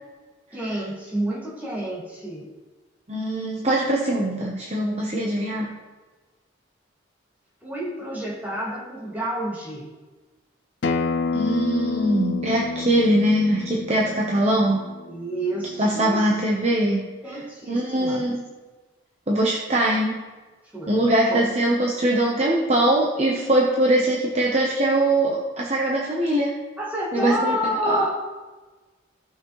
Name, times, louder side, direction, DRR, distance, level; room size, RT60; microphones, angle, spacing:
voice 1, 0.5-2.5 7.6-9.9 15.1-16.2 17.2-18.2 20.7-21.1 26.8-28.1, equal, 10° right, -5 dB, 2.2 m, -29 dB
voice 2, 3.1-5.7 11.3-14.8 15.8-17.0 17.7-18.5 19.3-20.2 20.9-26.6 27.1-27.6 27.8-28.1, right 1 dB, 35° right, -3 dB, 1.0 m, -22 dB
Acoustic guitar, 10.8-16.0, left 4 dB, 65° left, 0.5 m, -29 dB
15.5 x 6.1 x 3.2 m, 1.3 s
head